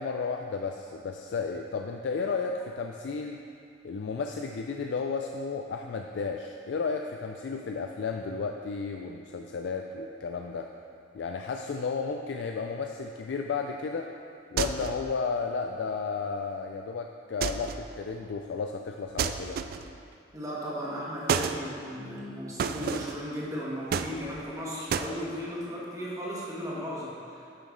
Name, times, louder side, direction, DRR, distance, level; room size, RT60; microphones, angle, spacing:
voice 1, 0.0-3.4 3.8-10.7 11.1-14.1 14.5-19.6, left 4 dB, 75° left, 3 dB, 0.4 m, -33 dB
sound 1, 14.6-15.1 17.4-17.9 19.2-20.0 21.3-21.6 22.6-23.2 23.9-24.5 24.9-25.1, right 6 dB, 55° right, 0.3 m, -30 dB
voice 2, 20.3-27.4, equal, 20° right, -6 dB, 1.5 m, -36 dB
9.5 x 5.4 x 3.7 m, 2.4 s
head